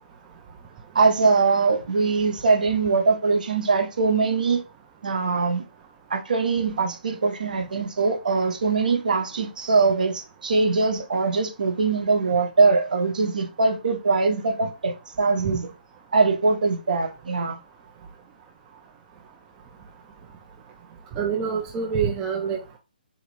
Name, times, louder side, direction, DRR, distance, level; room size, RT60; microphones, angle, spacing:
voice 1, 0.9-4.6 5.0-5.6 6.1-15.7 16.1-17.6, right 4 dB, 55° right, 0.9 m, -22 dB
voice 2, 21.2-22.8, right 6 dB, 15° right, 0.5 m, -26 dB
3.9 x 2.9 x 3.0 m
figure-of-eight pair, 140°, 5 cm